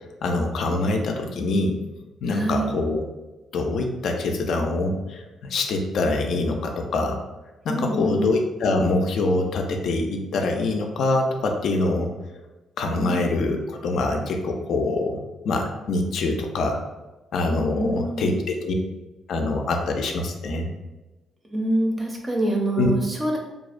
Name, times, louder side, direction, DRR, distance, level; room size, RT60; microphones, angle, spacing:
voice 1, 0.2-1.8 2.2-3.0 3.5-7.2 7.6-12.1 12.8-15.2 15.4-16.8 17.3-18.8 19.3-20.7 22.8-22.9, left 2 dB, 65° left, 3 dB, 0.3 m, -24 dB
voice 2, 2.3-2.7 7.7-8.3 13.0-13.4 17.8-18.3 21.5-23.4, right 1 dB, 25° right, 0 dB, 0.5 m, -25 dB
2.5 x 2.0 x 2.4 m, 1.1 s
cardioid pair, 105°, 0 cm